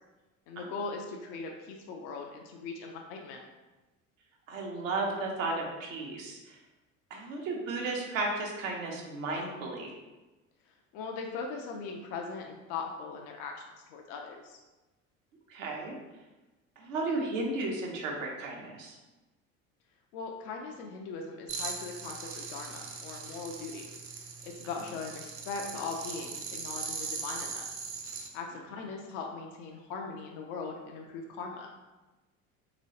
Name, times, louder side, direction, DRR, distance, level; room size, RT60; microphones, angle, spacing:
voice 1, 0.5-3.4 10.9-13.6 13.9-14.6 20.1-23.9 24.4-27.7 28.3-31.7, left 4 dB, 55° left, 2 dB, 0.5 m, -40 dB
voice 2, 4.5-6.6 7.1-9.9 15.5-16.0 16.8-19.0, right 2 dB, 70° right, 0 dB, 0.8 m, -34 dB
sound 1, 21.5-28.3, right 5 dB, 35° right, 0.6 m, -40 dB
3.0 x 3.0 x 2.8 m, 1.1 s
hypercardioid pair, 70°, 40 cm